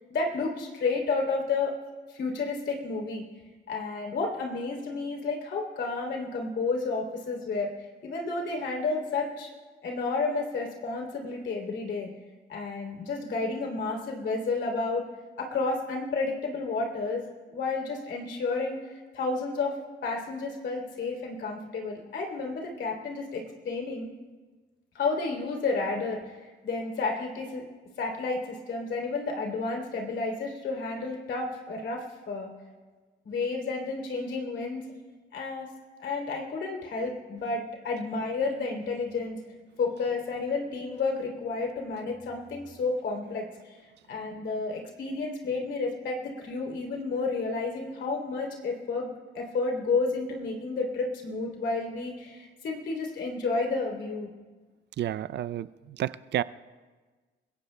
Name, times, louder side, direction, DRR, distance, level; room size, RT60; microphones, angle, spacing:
voice 1, 0.1-1.7 2.1-3.2 3.7-7.7 8.0-9.5 9.8-12.1 12.5-15.0 15.4-17.2 17.5-18.8 19.1-19.7 20.0-24.1 24.9-26.4 26.6-27.6 28.0-32.5 33.2-34.8 35.3-35.7 36.0-39.4 39.8-43.8 44.1-54.3, left 3 dB, 65° left, 0 dB, 3.1 m, -31 dB
voice 2, 55.0-56.4, right 12 dB, 60° right, 16 dB, 0.5 m, -31 dB
29.0 x 16.0 x 2.2 m, 1.4 s
cardioid pair, 90°, 20 cm